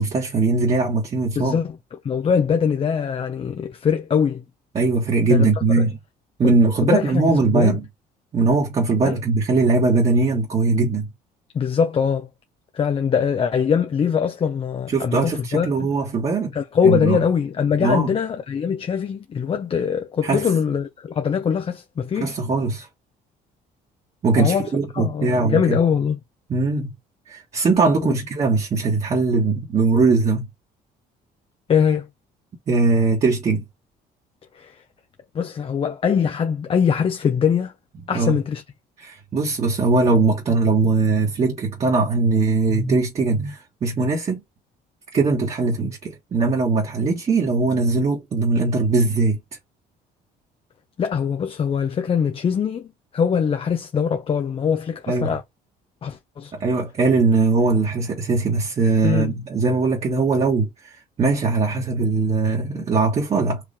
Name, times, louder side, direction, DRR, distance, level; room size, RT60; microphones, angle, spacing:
voice 1, 0.0-1.6 4.7-6.0 6.4-7.8 8.3-11.1 14.9-16.5 16.8-17.2 17.8-18.1 20.2-20.4 22.2-22.9 24.2-25.8 26.5-26.9 27.3-30.5 32.7-33.6 38.1-38.4 39.0-44.4 45.1-49.4 55.1-55.3 56.6-63.6, right 3 dB, 40° right, 1.7 m, -20 dB
voice 2, 1.4-1.8 2.0-4.4 5.3-5.5 5.8-5.9 6.4-6.6 6.8-7.2 7.5-7.8 9.0-9.2 11.5-12.3 12.7-15.7 16.5-22.4 24.3-24.7 24.9-26.2 28.0-28.1 31.7-32.1 34.5-34.7 35.3-37.7 38.1-38.6 51.0-52.9 53.1-55.4 56.0-56.5 59.0-59.3, left 7 dB, 35° left, 0.6 m, -22 dB
4.8 x 2.9 x 3.5 m
cardioid pair, 110°, 17 cm